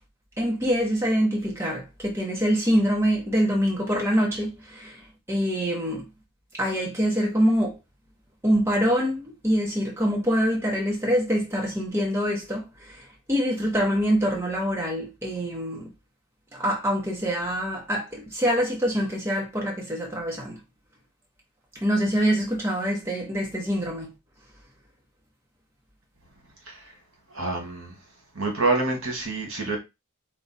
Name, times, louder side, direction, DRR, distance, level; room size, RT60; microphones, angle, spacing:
voice 1, 0.4-6.0 6.5-7.8 8.4-15.9 16.5-20.6 21.7-24.1, equal, 10° right, 1.1 m, -25 dB
voice 2, 27.3-27.9 28.3-29.8, right 3 dB, 65° right, 1.5 m, -26 dB
4.7 x 2.5 x 4.1 m
head